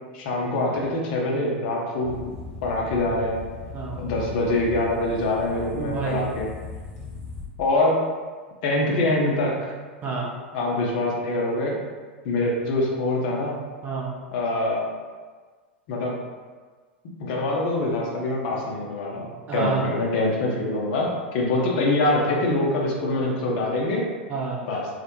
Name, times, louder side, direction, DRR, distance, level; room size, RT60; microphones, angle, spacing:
voice 1, 0.1-2.2 2.6-3.4 3.9-6.5 7.6-8.0 8.6-9.7 10.5-11.8 12.2-13.6 14.3-14.8 15.9-16.1 17.2-24.1 24.7-24.9, left 2 dB, 50° left, -2 dB, 0.5 m, -24 dB
sound 1, 2.0-7.4, left 3 dB, 10° left, 0.8 m, -38 dB
voice 2, 3.7-4.0 5.7-6.3 10.0-10.3 13.8-14.2 19.5-19.9 21.6-21.7 24.3-24.7, right 4 dB, 25° right, -3 dB, 0.5 m, -28 dB
2.1 x 2.0 x 2.9 m, 1.4 s
figure-of-eight pair, 90°, 6 cm